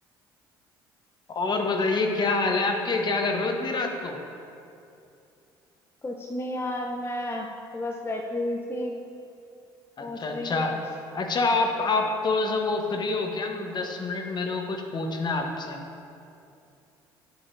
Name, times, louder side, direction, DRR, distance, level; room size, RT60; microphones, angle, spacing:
voice 1, 1.3-4.2 10.0-10.7 11.1-15.8, left 3 dB, 40° left, 3 dB, 1.1 m, -26 dB
voice 2, 6.0-7.5 7.7-8.9 10.0-10.8, left 1 dB, 20° left, 0 dB, 0.7 m, -32 dB
9.9 x 8.1 x 2.7 m, 2.6 s
hypercardioid pair, 60°, 11 cm